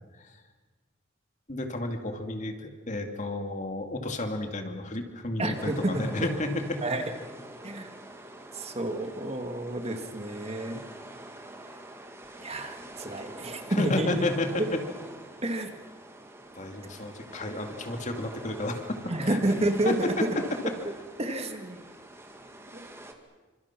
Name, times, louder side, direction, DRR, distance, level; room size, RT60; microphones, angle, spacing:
voice 1, 1.5-7.1 13.7-14.8 16.6-19.4 19.8-20.1, left 1 dB, 40° left, 5 dB, 2.4 m, -32 dB
voice 2, 5.4-6.3 6.8-7.0 7.6-7.9 8.5-10.8 12.4-14.2 15.4-15.7 19.1-20.1 21.2-21.8 22.7-22.9, right 1 dB, 35° right, 5 dB, 2.1 m, -30 dB
sound 1, 5.5-23.1, right 1 dB, 15° right, 2.1 m, -45 dB
29.0 x 25.5 x 6.1 m, 1.3 s
head